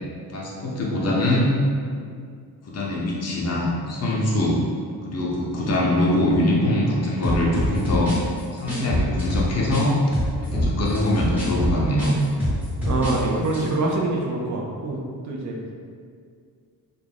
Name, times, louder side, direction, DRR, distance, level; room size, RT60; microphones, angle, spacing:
voice 1, 0.3-1.5 2.6-4.6 5.0-8.1 8.5-10.0 10.4-12.2, left 1 dB, 40° left, -4 dB, 0.6 m, -23 dB
sound 1, 7.2-9.9 10.1-13.2 13.4-13.7, left 1 dB, 5° right, 0.9 m, -24 dB
voice 2, 12.9-15.0 15.2-15.6, right 2 dB, 50° right, -2 dB, 0.5 m, -25 dB
2.4 x 2.2 x 3.3 m, 2.2 s
cardioid pair, 115°, 39 cm